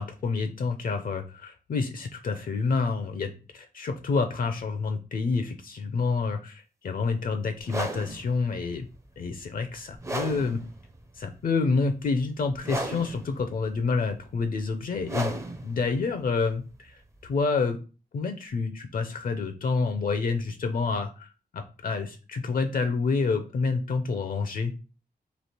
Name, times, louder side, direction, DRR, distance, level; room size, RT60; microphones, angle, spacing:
voice 1, 0.0-8.9 9.2-10.6 11.2-15.3 15.6-17.8 18.1-24.7, left 4 dB, 60° left, 7 dB, 0.6 m, -28 dB
sound 1, 7.6-17.5, right 1 dB, 20° right, 0.5 m, -37 dB
3.2 x 2.8 x 4.3 m, 0.34 s
wide cardioid pair, 135°, 16 cm